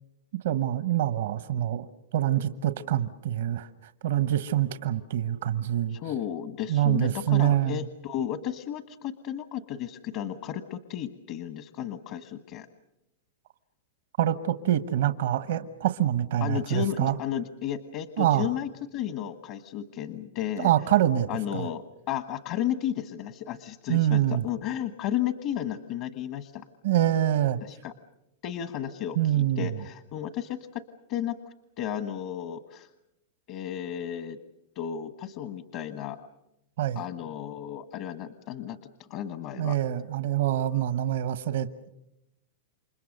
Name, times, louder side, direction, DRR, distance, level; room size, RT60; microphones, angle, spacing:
voice 1, 0.4-1.9 2.1-3.7 4.0-6.0 6.7-7.8 14.2-17.1 18.2-18.4 20.6-21.7 23.9-24.4 26.8-27.6 29.2-29.7 36.8-37.0 39.5-41.9, right 12 dB, 70° right, 12 dB, 1.1 m, -25 dB
voice 2, 5.9-12.7 16.4-20.7 21.3-26.6 27.6-27.9 28.4-30.8 31.1-31.4 31.8-32.9 33.5-34.4 34.7-36.2 36.9-38.8 39.1-39.8, left 10 dB, 50° left, 11 dB, 1.3 m, -33 dB
29.0 x 25.0 x 6.6 m, 0.86 s
hypercardioid pair, 130°, 0 cm